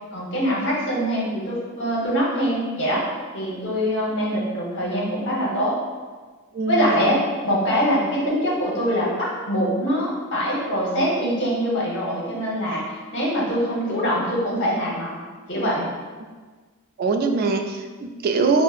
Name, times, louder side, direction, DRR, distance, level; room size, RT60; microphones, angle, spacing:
voice 1, 0.1-3.0 3.3-5.8 6.7-12.8 13.1-15.2 15.5-15.9, equal, 55° left, -5 dB, 1.0 m, -23 dB
voice 2, 6.5-6.9 17.0-18.6, right 4 dB, 45° right, 4 dB, 0.3 m, -22 dB
6.2 x 2.1 x 2.4 m, 1.4 s
head